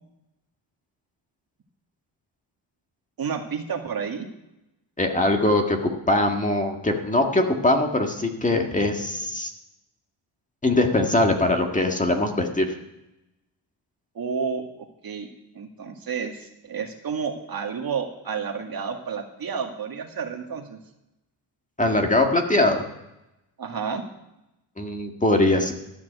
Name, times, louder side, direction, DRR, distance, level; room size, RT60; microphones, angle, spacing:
voice 1, 3.2-4.2 14.2-15.3 15.5-20.8 23.6-24.0, right 6 dB, 50° right, 3 dB, 2.2 m, -31 dB
voice 2, 5.0-9.5 10.6-12.7 21.8-22.8 24.8-25.7, left 2 dB, 15° left, 3 dB, 1.7 m, -22 dB
13.0 x 6.0 x 9.4 m, 0.91 s
cardioid pair, 100°, 44 cm